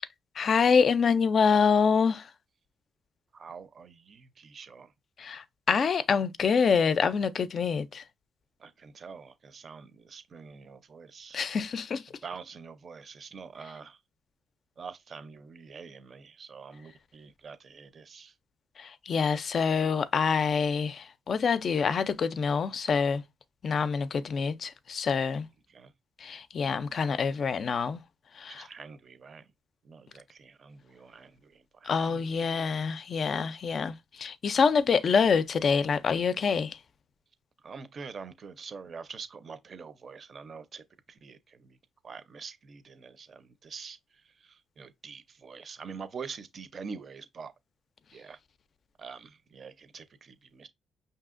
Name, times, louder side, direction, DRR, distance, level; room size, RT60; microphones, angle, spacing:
voice 1, 0.4-2.3 5.2-8.0 11.3-12.0 18.8-23.2 23.6-25.5 26.2-28.0 28.4-28.7 31.8-36.8, left 6 dB, 50° left, 0.4 m, -26 dB
voice 2, 3.3-4.9 8.6-11.4 12.2-14.0 14.8-18.3 25.7-25.9 28.5-29.5 29.8-32.5 37.6-41.8 42.0-47.5 48.1-48.4 49.0-50.7, right 5 dB, 45° right, 0.5 m, -45 dB
5.4 x 2.7 x 2.5 m
cardioid pair, 90°, 0 cm